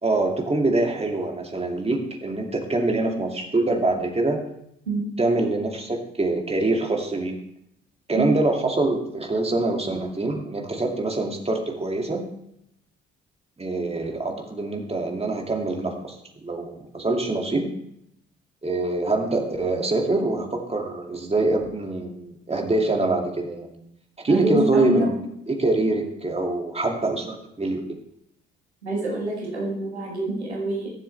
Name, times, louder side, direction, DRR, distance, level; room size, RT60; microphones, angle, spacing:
voice 1, 0.0-4.4 5.2-7.4 8.1-12.3 13.6-16.2 16.4-17.7 18.6-23.8 24.2-25.1 25.5-27.8, right 2 dB, 20° right, 1 dB, 2.4 m, -24 dB
voice 2, 24.3-25.1 28.8-31.0, right 1 dB, 85° right, -2 dB, 1.7 m, -26 dB
20.5 x 7.4 x 3.3 m, 0.76 s
figure-of-eight pair, 40°, 32 cm